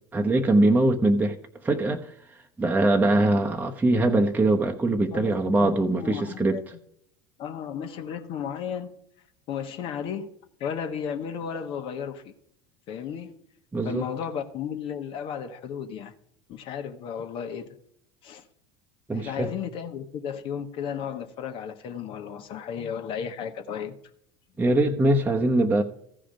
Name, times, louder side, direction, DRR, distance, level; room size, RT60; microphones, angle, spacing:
voice 1, 0.1-1.4 1.6-2.1 2.6-6.6 13.7-14.0 19.1-19.5 24.6-25.8, right 2 dB, 15° right, 0.9 m, -22 dB
voice 2, 5.1-6.6 7.4-8.9 9.5-10.3 10.6-12.3 12.9-13.3 13.8-16.1 16.5-17.7 18.2-18.4 19.1-23.9, left 8 dB, 50° left, 1.2 m, -34 dB
14.5 x 5.1 x 5.0 m
hypercardioid pair, 75°, 11 cm